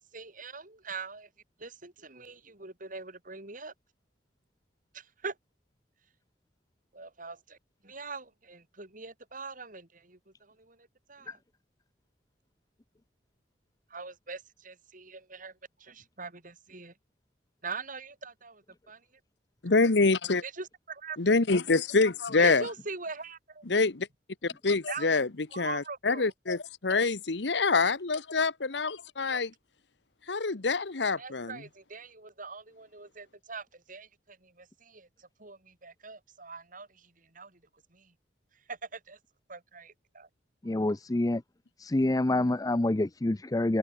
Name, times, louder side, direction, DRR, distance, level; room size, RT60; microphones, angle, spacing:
voice 1, 0.1-1.3 1.6-3.7 4.9-5.4 6.9-7.6 7.8-11.4 13.9-16.9 17.6-19.0 20.4-21.4 22.4-23.7 24.9-25.1 25.5-26.3 31.0-37.6 37.9-38.1 38.7-39.2 39.5-40.3, right 4 dB, 50° right, 5.3 m, -43 dB
voice 2, 19.6-20.4 21.2-22.7 23.7-24.1 24.4-25.3 25.6-29.5 30.3-31.6, left 3 dB, 80° left, 1.1 m, -26 dB
voice 3, 40.6-41.4 41.8-43.8, left 2 dB, 20° left, 0.5 m, -27 dB
head